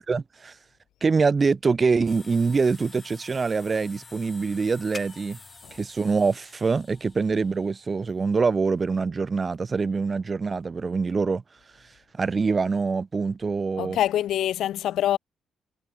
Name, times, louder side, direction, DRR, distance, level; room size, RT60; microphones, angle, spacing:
voice 1, 0.1-0.5 1.0-5.4 5.7-11.4 12.2-14.0, right 4 dB, 35° right, 1.4 m, -24 dB
sound 1, 2.1-8.9, left 4 dB, 30° left, 5.5 m, -48 dB
voice 2, 13.8-15.2, left 12 dB, 75° left, 1.1 m, -25 dB
cardioid pair, 90°, 0 cm